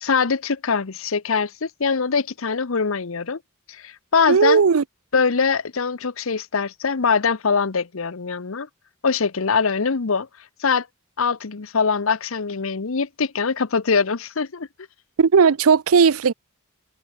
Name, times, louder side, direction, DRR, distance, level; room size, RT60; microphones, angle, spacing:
voice 1, 0.0-3.4 3.7-4.6 5.1-8.7 9.0-10.3 10.6-10.9 11.2-14.7, left 5 dB, 65° left, 0.8 m, -23 dB
voice 2, 4.3-4.8 15.2-16.3, right 5 dB, 80° right, 0.6 m, -16 dB
head